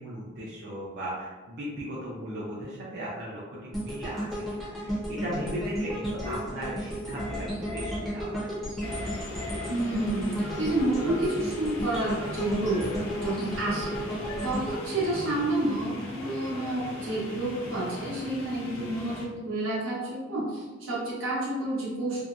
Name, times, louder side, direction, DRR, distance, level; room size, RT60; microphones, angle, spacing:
voice 1, 0.0-4.4 4.7-8.4, equal, 55° right, -7 dB, 0.5 m, -37 dB
sound 1, 3.7-15.9 16.3-16.5, equal, ahead, 0.6 m, -34 dB
sound 2, 6.2-6.4 7.2-8.0 8.8-9.7 10.4-11.3 12.1-13.3 13.6-14.5 15.1-15.4, left 1 dB, 35° left, 0.7 m, -38 dB
sound 3, 8.8-19.3, left 1 dB, 90° left, 0.5 m, -40 dB
voice 2, 9.7-10.3 10.6-12.9 13.2-14.0 14.4-22.2, right 1 dB, 85° right, -5 dB, 0.8 m, -29 dB
2.7 x 2.1 x 2.4 m, 1.3 s
head